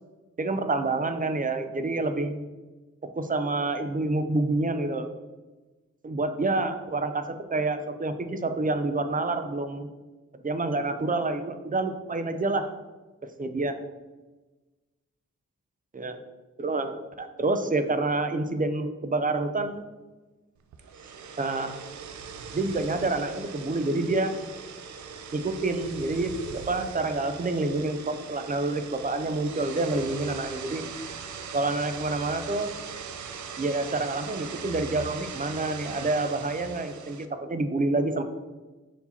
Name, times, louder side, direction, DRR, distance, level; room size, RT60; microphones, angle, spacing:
voice 1, 0.4-2.4 3.1-5.1 6.0-9.9 10.4-12.7 13.4-13.8 15.9-16.2 16.6-19.8 21.4-21.8 22.5-24.5 25.3-30.9 31.5-32.7 33.6-38.2, right 2 dB, 30° right, 8 dB, 0.5 m, -28 dB
sound 1, 20.7-37.3, right 6 dB, 75° right, 0.5 m, -40 dB
5.5 x 4.7 x 4.1 m, 1.2 s
wide cardioid pair, 160°, 29 cm